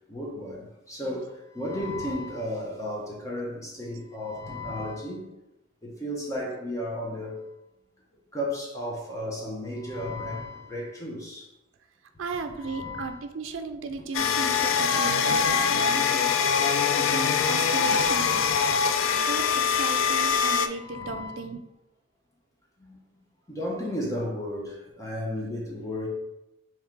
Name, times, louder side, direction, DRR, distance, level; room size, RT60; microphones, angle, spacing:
voice 1, 0.1-5.2 5.8-7.3 8.3-11.5 12.6-13.2 18.0-19.0 20.7-21.4 22.8-23.0 23.5-26.1, left 1 dB, 15° left, -3 dB, 0.8 m, -34 dB
voice 2, 12.2-16.3 16.9-18.5 19.3-21.6 25.4-25.5, right 4 dB, 75° right, 7 dB, 0.4 m, -35 dB
sound 1, 14.1-20.7, left 6 dB, 90° left, 0.4 m, -23 dB
3.6 x 3.1 x 4.5 m, 0.91 s
head